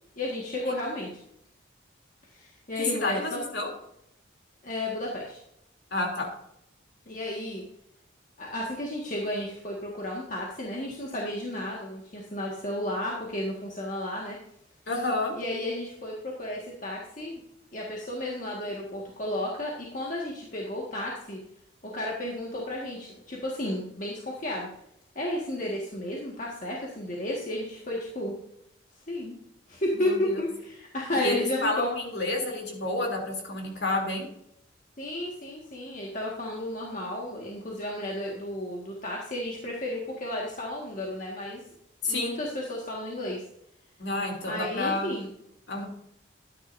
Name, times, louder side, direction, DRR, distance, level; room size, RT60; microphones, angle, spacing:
voice 1, 0.2-1.1 2.4-3.4 4.6-5.4 7.1-7.6 8.4-14.4 15.3-17.4 17.7-21.4 21.8-24.7 25.2-28.3 29.1-29.3 29.7-31.9 35.0-41.6 42.1-43.4 44.5-45.3, left 1 dB, 40° left, -3 dB, 1.8 m, -33 dB
voice 2, 2.9-3.7 5.9-6.3 14.9-15.3 29.9-30.4 31.1-34.3 42.0-42.4 44.0-45.1 45.7-45.9, left 2 dB, 60° left, 0 dB, 3.1 m, -29 dB
12.5 x 10.0 x 2.7 m, 0.76 s
head